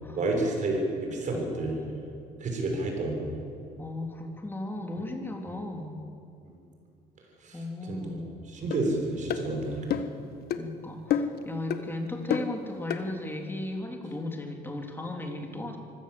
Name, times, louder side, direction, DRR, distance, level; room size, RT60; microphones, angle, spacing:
voice 1, 0.1-1.8 2.4-3.3 7.4-8.2 8.5-10.0, right 2 dB, 45° right, 2 dB, 6.2 m, -30 dB
voice 2, 1.3-2.0 3.8-5.9 7.5-8.3 10.6-15.8, left 2 dB, 10° left, 2 dB, 3.4 m, -36 dB
sound 1, 8.7-8.8 9.3-9.5 9.9-10.2 10.5-10.6 11.1-11.4 11.7-11.8 12.3-12.5 12.9-13.0, left 8 dB, 65° left, 1.5 m, -28 dB
24.5 x 16.0 x 8.0 m, 2.6 s
cardioid pair, 110°, 17 cm